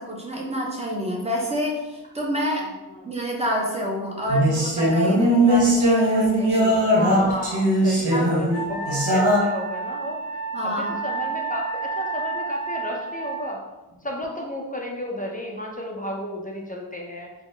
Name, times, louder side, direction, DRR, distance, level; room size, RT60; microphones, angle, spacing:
voice 1, 0.0-2.6 3.0-7.4 8.0-8.4 10.5-10.9, equal, 15° right, -2 dB, 0.8 m, -28 dB
voice 2, 2.3-2.7 3.0-3.1 6.9-10.2 10.6-10.7 11.0-13.6 14.0-17.3, equal, 20° left, 0 dB, 0.4 m, -32 dB
sound 1, 4.3-9.4, right 1 dB, 75° right, 1.0 m, -19 dB
Wind instrument woodwind instrument, 8.5-13.4, right 4 dB, 65° left, 0.6 m, -31 dB
3.8 x 2.0 x 3.2 m, 1.1 s
wide cardioid pair, 80°, 39 cm